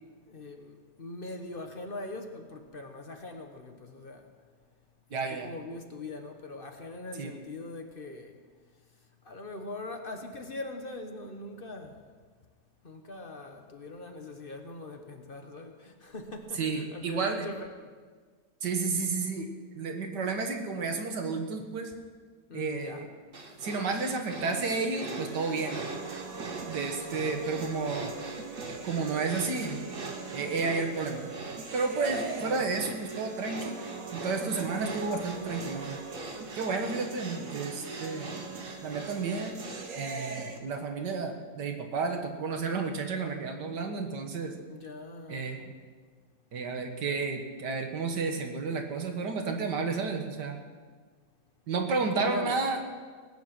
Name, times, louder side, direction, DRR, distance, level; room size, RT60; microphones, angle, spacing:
voice 1, 0.3-4.3 5.1-8.4 9.2-12.1 12.8-17.9 22.5-23.0 27.1-27.7 32.4-32.7 44.7-45.5 52.1-52.6, left 2 dB, 35° left, 4 dB, 1.3 m, -42 dB
voice 2, 5.1-5.5 7.2-7.3 16.6-17.4 18.6-19.5 19.8-21.9 22.5-23.1 23.6-25.9 26.7-28.1 28.8-29.8 30.3-31.3 31.7-33.8 34.1-36.0 36.5-38.3 38.8-39.6 40.0-44.6 45.3-45.7 46.5-50.6 51.7-52.8, right 4 dB, 80° right, 4 dB, 1.9 m, -31 dB
sound 1, 23.3-39.9, right 2 dB, 35° right, 1.4 m, -43 dB
sound 2, 24.6-40.6, right 4 dB, 55° right, 1.6 m, -41 dB
19.0 x 9.5 x 6.0 m, 1.5 s
omnidirectional pair, 1.8 m